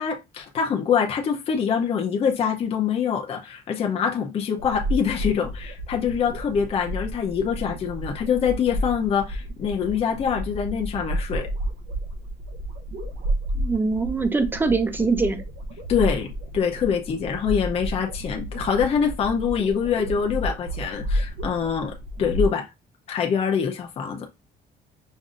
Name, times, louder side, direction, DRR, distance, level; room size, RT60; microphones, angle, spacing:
voice 1, 0.0-11.5 15.9-22.7 23.1-24.3, left 7 dB, 35° left, 0.6 m, -25 dB
sound 1, 4.6-22.5, equal, 85° right, 0.9 m, -31 dB
voice 2, 13.5-15.4, right 4 dB, 10° right, 0.4 m, -23 dB
5.2 x 2.6 x 2.4 m
cardioid pair, 175°, 17 cm